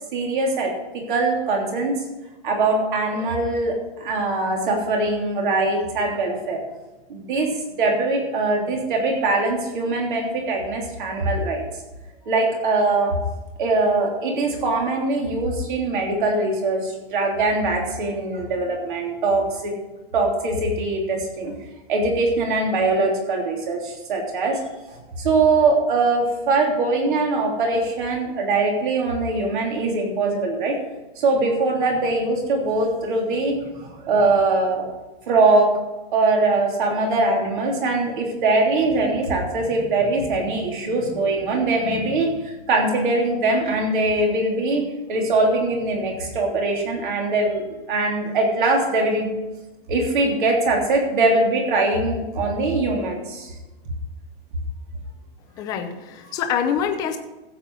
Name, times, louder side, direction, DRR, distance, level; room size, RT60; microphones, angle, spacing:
voice 1, 0.1-1.9 2.4-6.6 7.1-7.5 7.8-11.6 12.2-13.2 13.6-19.7 20.1-21.5 21.9-24.6 24.9-30.8 31.2-34.8 35.3-35.8 36.1-42.3 42.7-44.8 45.1-47.6 47.9-49.4 49.9-53.5, right 2 dB, 55° right, 1 dB, 3.2 m, -22 dB
voice 2, 55.6-57.2, left 8 dB, 15° left, 6 dB, 0.5 m, -25 dB
15.0 x 7.7 x 4.8 m, 1.1 s
supercardioid pair, 175°, 30 cm